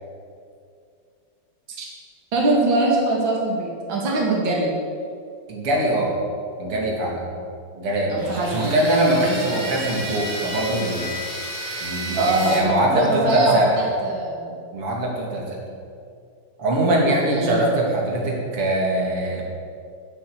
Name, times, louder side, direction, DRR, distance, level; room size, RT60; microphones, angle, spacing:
voice 1, 2.3-4.7 8.1-8.7 12.1-14.5 17.2-17.8, right 2 dB, 60° right, -2 dB, 3.2 m, -22 dB
voice 2, 5.5-6.2 6.6-7.4 7.8-11.1 11.8-13.7 14.7-15.6 16.6-19.4, right 1 dB, 85° right, -2 dB, 3.6 m, -22 dB
sound 1, 8.2-12.6, right 1 dB, 10° right, 3.5 m, -31 dB
11.5 x 11.5 x 8.7 m, 2.4 s
omnidirectional pair, 2.4 m